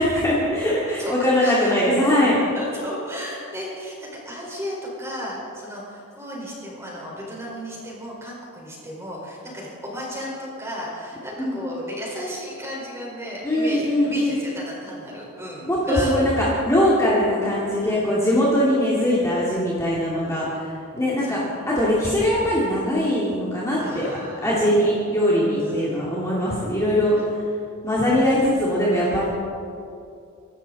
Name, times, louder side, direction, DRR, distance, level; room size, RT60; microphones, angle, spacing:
voice 1, 0.0-2.4 11.4-11.6 13.4-14.4 15.7-24.1 24.4-27.4 27.8-29.2, left 1 dB, 15° left, -7 dB, 2.4 m, -21 dB
voice 2, 0.9-1.7 2.5-16.3 17.8-18.1 21.2-21.4 23.8-24.5 25.6-26.0, equal, 10° right, -4 dB, 4.6 m, -34 dB
24.5 x 12.0 x 4.1 m, 2.5 s
head